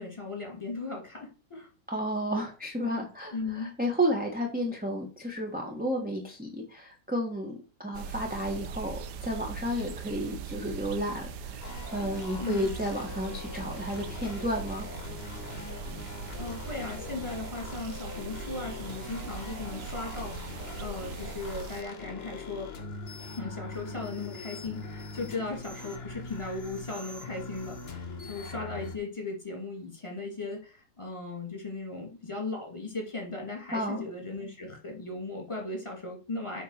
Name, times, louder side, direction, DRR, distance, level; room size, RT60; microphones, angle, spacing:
voice 1, 0.0-1.7 3.3-3.7 12.4-12.7 16.4-22.7 23.4-36.6, left 3 dB, 20° left, 0 dB, 2.7 m, -37 dB
voice 2, 1.9-11.6 11.9-14.9 33.7-34.0, equal, 5° right, 0 dB, 1.3 m, -32 dB
sound 1, 7.9-21.8, right 6 dB, 85° right, 1.4 m, -40 dB
sound 2, 11.6-29.0, left 3 dB, 40° left, 1.3 m, -42 dB
7.9 x 4.7 x 6.5 m, 0.34 s
omnidirectional pair, 1.7 m